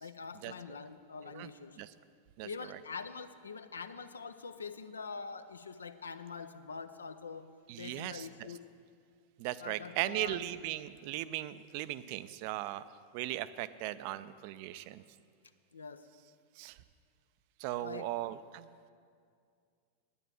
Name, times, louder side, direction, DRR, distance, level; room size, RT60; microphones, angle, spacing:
voice 1, 0.0-1.8 2.4-7.5 7.8-8.6 9.6-10.4 15.7-16.1 17.8-18.1, left 5 dB, 70° left, 11 dB, 0.6 m, -44 dB
voice 2, 7.7-8.3 9.4-12.8 13.1-15.0 16.6-16.8 17.6-18.7, right 14 dB, 45° right, 15 dB, 0.4 m, -37 dB
9.8 x 9.7 x 7.3 m, 2.2 s
figure-of-eight pair, 90°, 0 cm